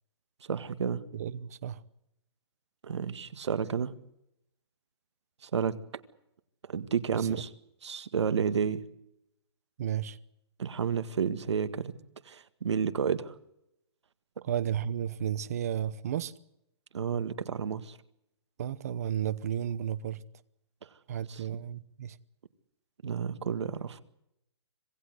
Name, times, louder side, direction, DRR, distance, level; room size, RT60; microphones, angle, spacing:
voice 1, 0.5-1.0 2.8-3.9 5.4-5.8 6.7-7.5 7.8-8.8 10.6-11.9 12.3-13.3 16.9-18.0 21.3-21.4 23.0-24.0, right 7 dB, 85° right, 1.9 m, -31 dB
voice 2, 1.1-1.8 7.1-7.4 9.8-10.2 14.4-16.3 18.6-20.2 21.1-22.2, right 10 dB, 35° right, 0.9 m, -33 dB
26.0 x 18.0 x 8.0 m
hypercardioid pair, 175°, 14 cm